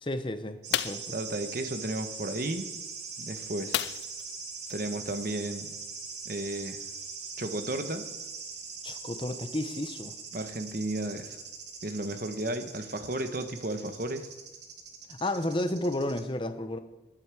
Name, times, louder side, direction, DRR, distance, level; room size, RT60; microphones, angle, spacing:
voice 1, 0.0-1.1 8.8-10.2 15.1-16.8, left 1 dB, 25° left, 9 dB, 0.8 m, -32 dB
sound 1, 0.6-16.2, right 5 dB, 75° right, 2.3 m, -41 dB
sound 2, 0.7-1.1 3.7-4.3 4.7-4.8 5.2-5.3, left 12 dB, 70° left, 0.3 m, -31 dB
voice 2, 1.1-2.7 3.2-3.8 4.7-5.7 6.2-6.8 7.4-8.0 10.3-11.4 11.8-14.3, right 1 dB, 50° right, 8 dB, 1.1 m, -33 dB
19.5 x 8.7 x 4.8 m, 1.1 s
head